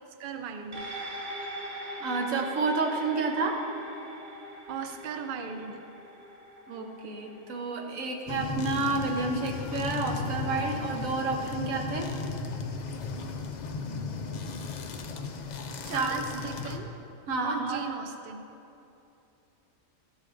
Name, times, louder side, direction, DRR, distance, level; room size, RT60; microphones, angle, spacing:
voice 1, 0.2-0.9 4.7-5.8 15.8-16.9 17.4-18.4, right 6 dB, 60° right, 6 dB, 0.5 m, -37 dB
sound 1, 0.7-9.4 9.8-9.9, equal, 40° right, 1.1 m, -42 dB
voice 2, 2.0-3.6 6.7-12.1 15.9-16.1 17.3-17.8, right 3 dB, 80° right, 2 dB, 1.3 m, -30 dB
sound 2, 8.3-16.8, left 4 dB, 75° left, 0.4 m, -35 dB
13.0 x 8.1 x 2.5 m, 2.9 s
omnidirectional pair, 1.4 m